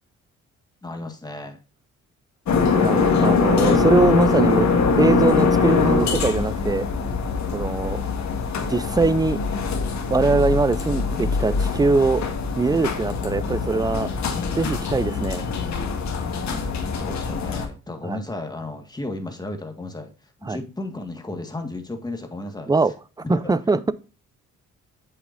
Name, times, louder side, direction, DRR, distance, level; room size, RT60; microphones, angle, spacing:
voice 1, 0.8-1.6 16.5-20.1 20.4-22.7 23.3-23.6, left 2 dB, 15° left, 1.8 m, -34 dB
sound 1, 2.5-17.7, left 4 dB, 65° left, 1.8 m, -23 dB
voice 2, 2.8-4.7 5.0-6.9 7.5-8.0 8.5-9.4 10.1-12.3 12.6-14.1 14.6-15.4 18.0-18.2 20.4-20.6 22.7-22.9 23.3-23.9, right 3 dB, 15° right, 0.5 m, -22 dB
8.2 x 6.8 x 2.6 m
cardioid pair, 90°, 30 cm